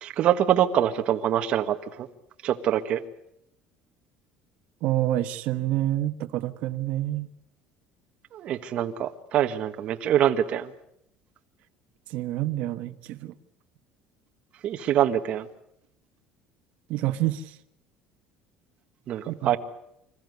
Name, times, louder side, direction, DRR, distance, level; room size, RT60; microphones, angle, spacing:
voice 1, 0.0-2.1 2.4-3.0 8.3-10.7 14.6-15.5 19.1-19.6, right 11 dB, 40° right, 7 dB, 1.5 m, -24 dB
voice 2, 4.8-7.3 12.1-13.3 16.9-17.6 19.3-19.6, right 14 dB, 55° right, 8 dB, 1.2 m, -28 dB
26.5 x 15.0 x 9.5 m, 0.78 s
cardioid pair, 170°, 3 cm